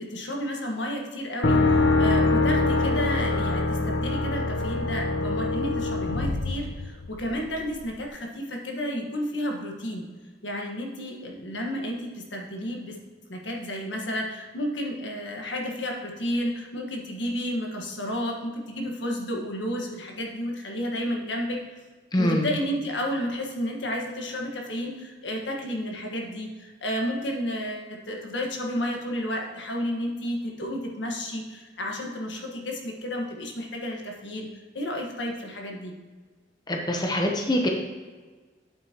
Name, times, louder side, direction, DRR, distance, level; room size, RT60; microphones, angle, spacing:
voice 1, 0.0-10.1 10.4-13.0 13.3-21.7 22.2-34.5 34.7-36.0, equal, 80° left, 1 dB, 1.5 m, -31 dB
sound 1, 1.4-7.3, left 2 dB, 60° left, 0.8 m, -24 dB
voice 2, 22.1-22.5 36.7-37.7, left 1 dB, 25° left, 1 dB, 0.9 m, -24 dB
8.7 x 7.8 x 3.0 m, 1.4 s
head